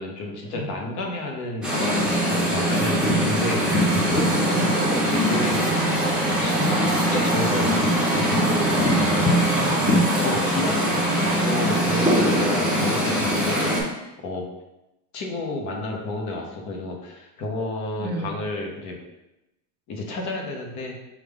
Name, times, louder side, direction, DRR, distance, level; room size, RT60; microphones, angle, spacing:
voice 1, 0.0-5.6 5.9-6.7 7.1-7.9 10.2-14.5 15.1-19.0 19.9-21.0, left 2 dB, 45° left, 1 dB, 1.0 m, -31 dB
sound 1, 1.6-13.8, equal, ahead, 0.8 m, -21 dB
voice 2, 4.5-4.8 6.6-6.8 9.0-10.2 18.0-18.4, right 1 dB, 25° right, 3 dB, 0.4 m, -32 dB
5.0 x 2.4 x 3.5 m, 0.96 s
cardioid pair, 140°, 40 cm